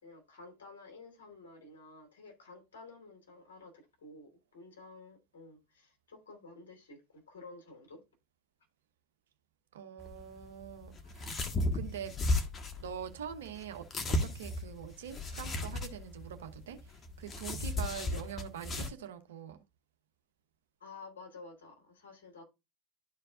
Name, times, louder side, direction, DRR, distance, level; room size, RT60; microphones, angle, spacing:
voice 1, 0.0-8.0 20.8-22.4, left 3 dB, 75° left, 2.8 m, -52 dB
voice 2, 9.7-11.3 11.7-12.2 12.8-13.9 14.2-19.6, right 9 dB, 70° right, 1.0 m, -44 dB
sound 1, 10.0-18.9, left 2 dB, 30° left, 1.4 m, -35 dB
12.0 x 4.5 x 2.4 m
figure-of-eight pair, 75°, 0 cm